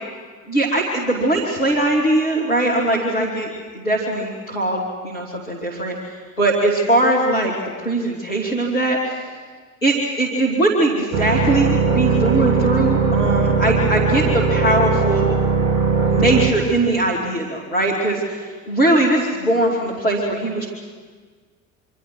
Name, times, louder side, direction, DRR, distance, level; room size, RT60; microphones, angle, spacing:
voice 1, 0.5-9.2 9.8-15.3 16.1-20.7, right 1 dB, 85° left, -4 dB, 2.8 m, -20 dB
sound 1, 11.1-16.5, right 5 dB, 70° right, 2.5 m, -19 dB
26.5 x 24.5 x 6.2 m, 1.5 s
figure-of-eight pair, 60°, 40 cm